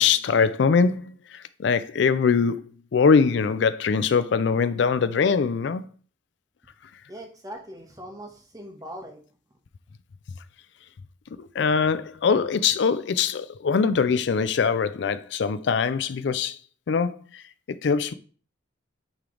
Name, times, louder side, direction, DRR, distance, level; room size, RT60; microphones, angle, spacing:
voice 1, 0.0-2.7 2.9-5.8 11.4-16.6 16.9-17.4 17.8-18.1, left 5 dB, 65° left, 0.4 m, -22 dB
voice 2, 7.1-9.2, equal, 20° right, 1.1 m, -40 dB
8.8 x 3.3 x 3.8 m
head